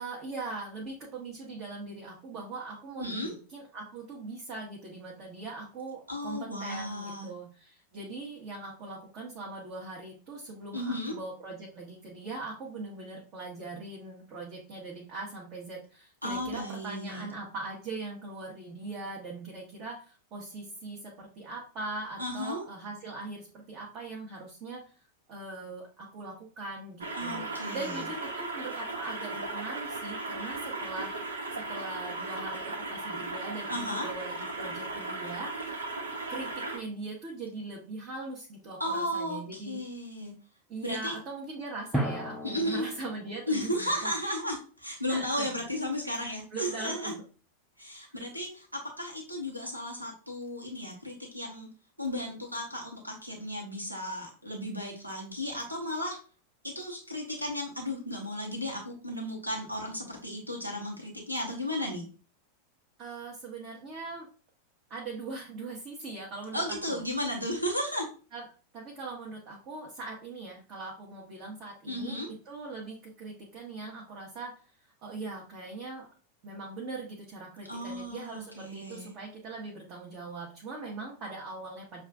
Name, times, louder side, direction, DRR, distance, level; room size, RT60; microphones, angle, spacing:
voice 1, 0.0-24.8 25.3-27.5 27.7-31.1 31.6-35.8 36.3-39.8 40.7-44.1 45.1-45.5 46.2-47.2 63.0-64.3 64.9-67.0 68.3-68.4 68.7-74.5 75.0-76.1 76.4-82.0, right 3 dB, 40° right, -3 dB, 1.2 m, -41 dB
voice 2, 3.0-3.3 6.1-7.3 10.7-11.2 16.2-17.3 22.2-22.6 27.1-28.1 33.7-34.1 38.8-40.3 40.8-41.1 42.4-42.9 43.5-47.1 47.8-51.7 52.0-56.2 56.6-62.1 66.5-68.1 71.9-72.3 77.7-79.1, left 1 dB, 85° right, 0 dB, 1.1 m, -34 dB
sound 1, 27.0-36.8, right 2 dB, 70° right, 0.7 m, -36 dB
Drum, 41.9-43.7, right 1 dB, 5° left, 0.6 m, -34 dB
6.9 x 2.5 x 2.3 m, 0.37 s
figure-of-eight pair, 90°, 0 cm